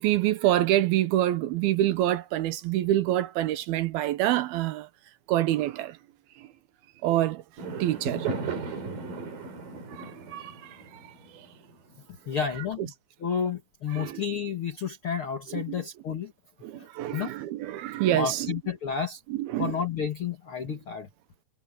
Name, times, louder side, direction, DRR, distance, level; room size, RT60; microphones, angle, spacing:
voice 1, 0.0-4.9 5.3-6.0 6.4-6.5 7.0-7.4 7.8-8.3 9.9-11.0 11.3-11.4 14.0-14.2 15.5-15.6 16.6-18.5 19.3-19.7, right 13 dB, 75° right, 2.4 m, -26 dB
Fireworks, 7.6-12.0, right 4 dB, 50° right, 5.0 m, -36 dB
voice 2, 12.3-12.9 13.2-16.3 16.7-17.3 18.1-19.2 19.6-21.1, left 7 dB, 55° left, 1.5 m, -31 dB
omnidirectional pair, 5.2 m